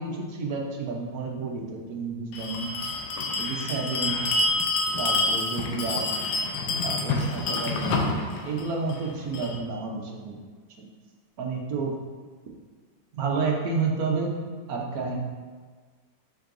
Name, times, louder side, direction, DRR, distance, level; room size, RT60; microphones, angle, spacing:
voice 1, 0.0-2.7 3.4-4.2 5.0-6.0 6.8-8.1 8.5-10.4 11.4-11.9 13.2-14.3 14.7-15.2, right 4 dB, 60° right, -1 dB, 1.2 m, -30 dB
Bell, 2.3-9.6, left 2 dB, 80° left, 1.4 m, -28 dB
7.5 x 5.5 x 2.6 m, 1.5 s
omnidirectional pair, 2.1 m